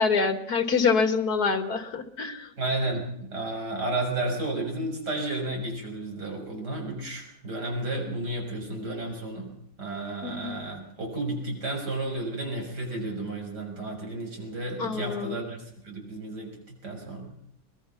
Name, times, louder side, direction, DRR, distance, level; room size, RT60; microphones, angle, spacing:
voice 1, 0.0-2.5 10.2-10.6 14.8-15.4, left 5 dB, 70° left, 9 dB, 2.4 m, -26 dB
voice 2, 2.6-9.5 9.8-17.3, right 2 dB, 90° right, 1 dB, 6.8 m, -32 dB
22.5 x 21.0 x 5.8 m, 0.72 s
omnidirectional pair, 1.7 m